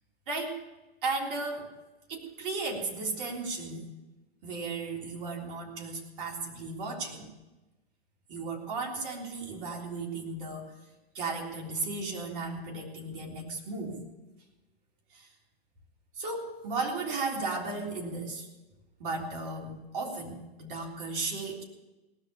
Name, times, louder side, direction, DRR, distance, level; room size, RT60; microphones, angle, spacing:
voice 1, 0.3-0.6 1.0-1.7 2.1-3.9 4.4-7.3 8.3-10.7 11.1-14.0 15.1-15.3 16.2-18.5 19.0-21.6, right 3 dB, 55° right, 0 dB, 3.5 m, -35 dB
18.0 x 6.5 x 8.4 m, 1.1 s
hypercardioid pair, 135°, 31 cm